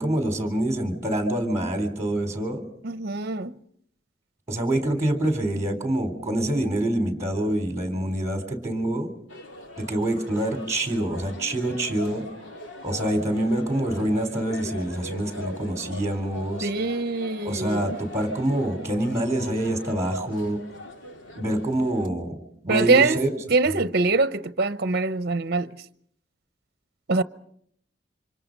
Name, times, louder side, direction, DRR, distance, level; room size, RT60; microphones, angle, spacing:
voice 1, 0.0-2.6 4.5-9.1 9.8-12.3 12.8-16.7 17.4-20.6 21.4-22.4 22.6-23.4 23.7-23.8, right 1 dB, 15° right, 4.0 m, -26 dB
voice 2, 2.8-3.5 16.6-18.0 22.7-23.2 23.5-25.7 27.1-27.2, right 3 dB, 60° right, 0.9 m, -23 dB
sound 1, 9.3-22.1, left 2 dB, 80° left, 2.9 m, -41 dB
29.0 x 26.0 x 5.4 m
head